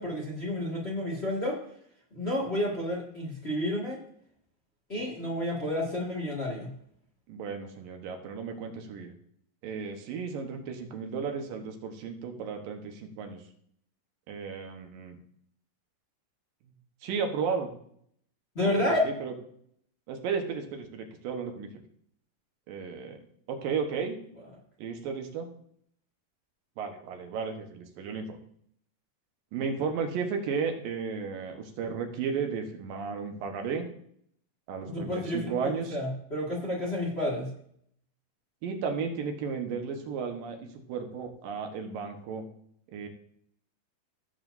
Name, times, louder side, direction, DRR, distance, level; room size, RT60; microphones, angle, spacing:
voice 1, 0.0-1.6 2.1-4.0 4.9-6.7 18.5-19.1 34.9-37.5, left 1 dB, 25° left, -3 dB, 1.5 m, -30 dB
voice 2, 7.3-9.1 9.6-13.4 14.3-15.2 17.0-17.7 18.6-19.3 20.1-21.7 22.7-23.2 23.5-24.2 24.8-25.5 26.8-28.4 29.5-33.9 34.7-36.0 38.6-42.4 42.9-43.1, right 5 dB, 85° right, 4 dB, 3.0 m, -34 dB
16.0 x 7.4 x 2.7 m, 0.67 s
omnidirectional pair, 3.9 m